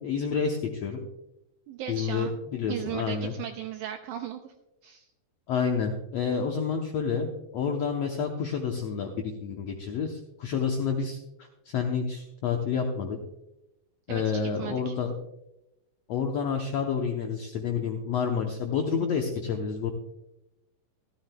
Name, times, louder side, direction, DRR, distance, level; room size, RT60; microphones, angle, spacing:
voice 1, 0.0-1.0 1.9-3.3 5.5-11.2 11.7-13.2 14.1-15.1 16.1-19.9, left 6 dB, 80° left, 2 dB, 1.4 m, -29 dB
voice 2, 1.7-2.3 2.7-4.5 4.8-5.1 14.1-14.2 14.6-14.9, right 10 dB, 85° right, 6 dB, 1.8 m, -36 dB
15.0 x 13.0 x 2.2 m, 0.90 s
omnidirectional pair, 4.2 m